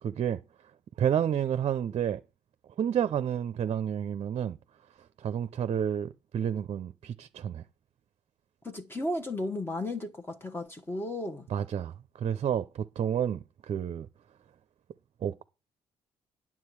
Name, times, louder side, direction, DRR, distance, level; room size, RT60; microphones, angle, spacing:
voice 1, 0.0-0.4 1.0-2.2 2.8-4.6 5.2-7.6 11.5-14.1 15.2-15.4, right 9 dB, 55° right, 0.5 m, -30 dB
voice 2, 8.6-11.5, left 1 dB, 20° left, 1.0 m, -34 dB
9.7 x 7.4 x 4.6 m
supercardioid pair, 65°, 12 cm